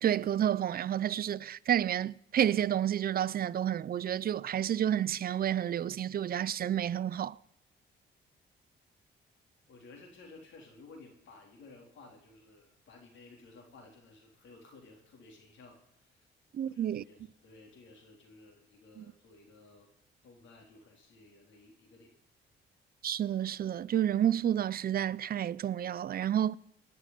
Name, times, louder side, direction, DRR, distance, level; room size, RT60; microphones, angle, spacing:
voice 1, 0.0-7.4 16.5-17.0 19.0-19.1 23.0-26.6, right 10 dB, 50° right, 0.5 m, -30 dB
voice 2, 9.7-15.8 16.0-16.2 16.6-19.9 20.2-22.1, left 3 dB, 70° left, 3.8 m, -55 dB
19.5 x 6.6 x 9.3 m
cardioid pair, 90°, 20 cm